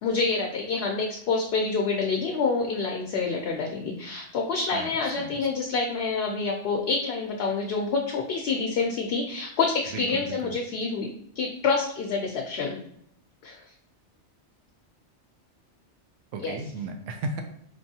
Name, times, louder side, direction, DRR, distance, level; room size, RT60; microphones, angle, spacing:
voice 1, 0.0-11.1 11.4-12.8 13.4-13.6 16.4-16.6, left 4 dB, 65° left, 0 dB, 0.8 m, -27 dB
voice 2, 4.7-5.3 9.9-10.5 16.3-17.4, right 3 dB, 85° right, 5 dB, 0.9 m, -35 dB
4.5 x 2.6 x 2.7 m, 0.71 s
omnidirectional pair, 1.2 m